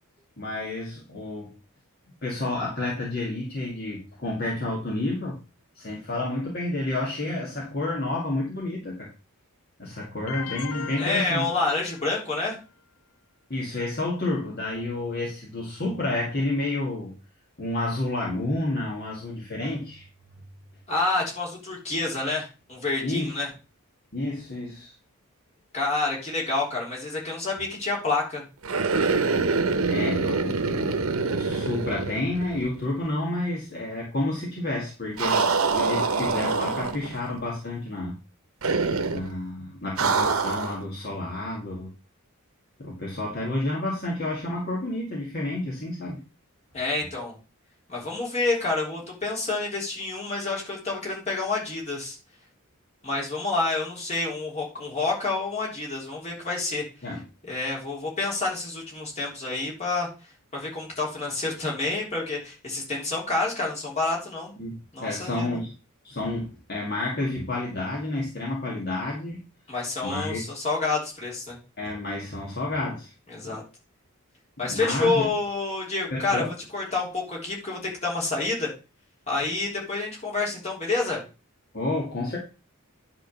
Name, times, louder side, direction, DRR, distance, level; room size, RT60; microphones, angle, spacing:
voice 1, 0.4-1.5 2.2-5.4 5.8-9.1 9.8-11.5 13.5-17.1 17.6-20.1 23.0-23.3 24.1-24.9 29.4-29.5 29.8-38.2 39.1-41.9 42.8-46.2 57.0-57.2 64.6-65.7 66.0-69.4 70.0-70.4 71.8-73.1 73.4-73.6 74.6-75.3 76.1-76.5 81.7-82.4, left 2 dB, 45° left, -4 dB, 2.2 m, -30 dB
sound 1, 10.3-12.4, left 5 dB, 80° left, 0.8 m, -38 dB
voice 2, 11.0-12.6 20.9-23.5 25.7-28.4 46.7-47.3 47.9-52.2 53.0-56.8 57.5-60.1 60.5-64.5 64.9-65.6 69.7-71.6 73.3-73.6 74.6-76.5 76.7-78.7 79.3-81.2, left 3 dB, 30° left, -3 dB, 3.6 m, -28 dB
sound 2, 28.6-32.8 33.1-33.2 35.2-37.2 38.6-39.3 40.0-40.8, right 4 dB, 70° right, 0.9 m, -25 dB
10.0 x 3.9 x 6.7 m, 0.32 s
head